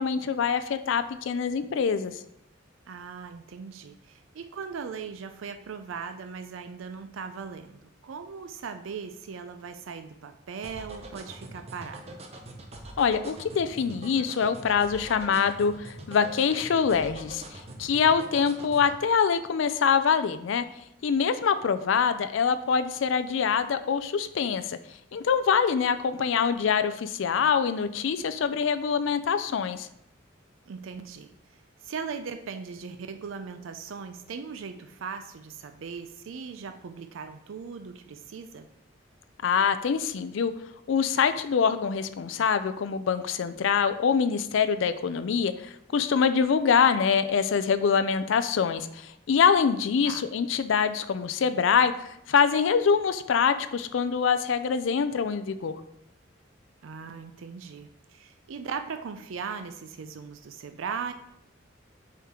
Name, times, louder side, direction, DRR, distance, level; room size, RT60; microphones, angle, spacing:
voice 1, 0.0-2.1 13.0-20.6 21.0-24.8 25.1-29.9 39.4-40.5 40.9-51.9 52.3-55.8, left 6 dB, 70° left, 11 dB, 0.4 m, -24 dB
voice 2, 2.9-12.2 30.7-38.7 50.1-50.3 56.8-61.1, right 6 dB, 80° right, 8 dB, 0.4 m, -39 dB
sound 1, 10.6-19.0, right 2 dB, 30° right, 0.7 m, -43 dB
7.0 x 4.4 x 3.6 m, 0.78 s
head